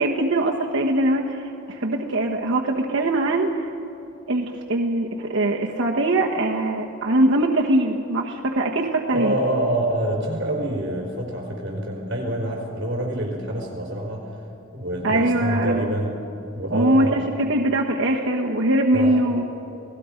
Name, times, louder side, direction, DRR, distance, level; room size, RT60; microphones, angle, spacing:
voice 1, 0.0-3.7 4.3-9.3 15.0-15.9 16.7-19.4, right 1 dB, 90° right, -1 dB, 1.3 m, -22 dB
voice 2, 9.1-14.3 14.7-16.1 16.5-17.2 18.9-19.2, right 1 dB, 55° right, 0 dB, 4.5 m, -26 dB
29.0 x 18.5 x 5.2 m, 2.9 s
head